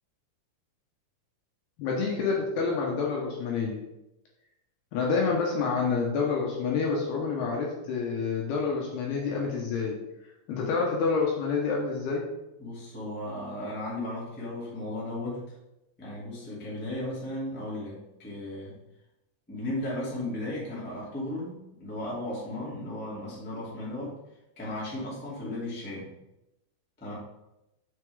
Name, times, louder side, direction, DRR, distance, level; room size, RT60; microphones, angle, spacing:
voice 1, 1.8-3.8 4.9-10.0 10.5-12.2, left 5 dB, 75° left, -2 dB, 2.7 m, -28 dB
voice 2, 12.6-15.5 16.0-18.8 19.5-24.1 24.5-26.1 27.0-27.1, left 1 dB, 5° left, -8 dB, 1.3 m, -35 dB
6.8 x 6.7 x 3.6 m, 0.92 s
omnidirectional pair, 5.3 m